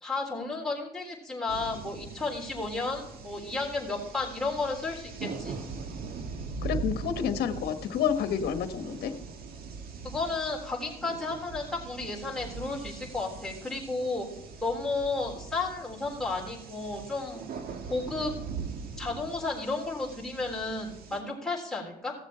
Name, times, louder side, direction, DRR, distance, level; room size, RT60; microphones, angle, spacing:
voice 1, 0.0-5.6 10.0-14.3 14.6-17.4 17.9-18.3 19.0-22.1, left 3 dB, 5° left, -4 dB, 3.7 m, -33 dB
sound 1, 1.5-21.2, right 5 dB, 60° right, 1.7 m, -41 dB
voice 2, 6.6-9.1, left 8 dB, 70° left, 9 dB, 1.2 m, -29 dB
16.5 x 7.3 x 4.4 m, 0.78 s
cardioid pair, 110°, 17 cm